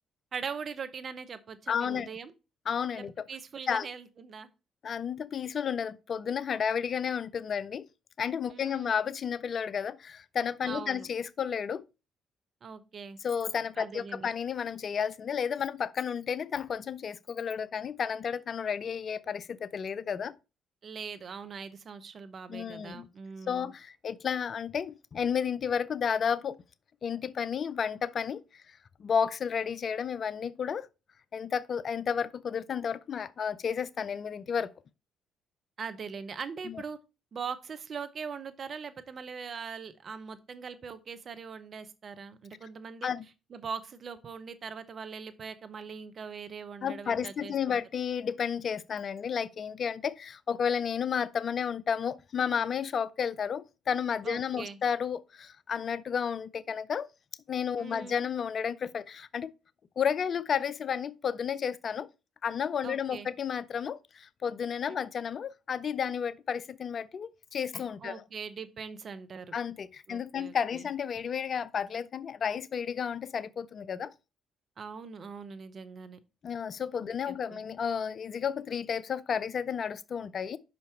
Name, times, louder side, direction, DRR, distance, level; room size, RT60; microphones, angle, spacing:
voice 1, 0.3-2.3 2.9-4.5 8.5-9.0 10.7-11.1 12.6-13.2 13.8-14.3 20.8-23.7 35.8-37.0 37.3-43.1 43.5-47.8 54.2-54.8 57.8-58.2 62.8-63.3 68.0-69.5 70.1-70.9 74.8-76.2 77.3-77.6, right 6 dB, 50° right, 0.8 m, -41 dB
voice 2, 1.7-2.1 2.7-3.2 3.7-3.9 4.8-7.8 8.2-11.8 13.2-20.3 22.5-23.1 23.5-26.6 27.0-28.6 29.0-30.9 31.3-34.7 36.7-36.8 43.0-43.2 46.8-57.1 57.5-59.5 60.0-62.1 62.4-68.2 69.5-74.1 76.4-80.6, left 7 dB, 50° left, 0.4 m, -32 dB
5.6 x 5.1 x 4.5 m
hypercardioid pair, 50°, 0 cm